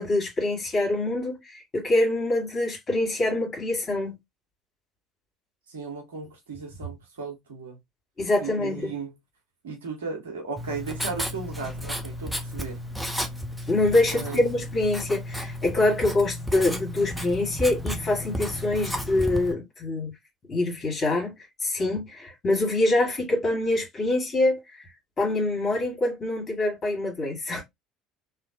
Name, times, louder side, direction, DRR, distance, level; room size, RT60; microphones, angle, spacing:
voice 1, 0.0-1.4 1.7-4.1 8.2-8.9 13.7-20.1 20.5-21.3 21.6-24.6 25.2-27.6, left 2 dB, 30° left, 1.8 m, -25 dB
voice 2, 5.7-7.8 8.4-9.1 9.6-12.8 14.1-14.5, right 4 dB, 75° right, 1.1 m, -36 dB
Writing, 10.6-19.5, equal, 5° right, 0.7 m, -33 dB
3.0 x 2.4 x 2.8 m
figure-of-eight pair, 60°, 0 cm